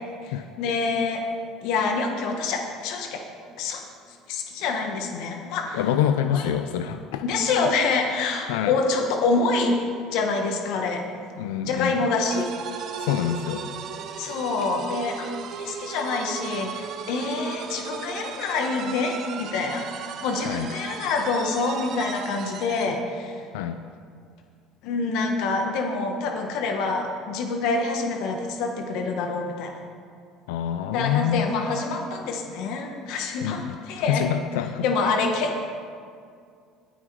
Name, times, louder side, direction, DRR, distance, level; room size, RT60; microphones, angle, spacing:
voice 1, 0.2-1.2 1.6-3.2 3.6-3.8 4.3-5.8 6.3-6.5 7.2-9.8 10.1-11.1 11.6-12.5 14.2-23.4 24.8-29.8 30.8-34.3 34.8-35.6, left 3 dB, 70° left, 3 dB, 1.2 m, -26 dB
voice 2, 5.7-7.2 8.5-8.7 11.4-12.1 13.0-13.6 20.5-20.7 23.5-23.8 30.5-31.5 33.4-34.8, left 10 dB, 90° left, 9 dB, 0.4 m, -26 dB
sound 1, 12.3-23.0, right 7 dB, 55° right, 0.8 m, -36 dB
18.0 x 6.1 x 4.7 m, 2.2 s
supercardioid pair, 105°, 0 cm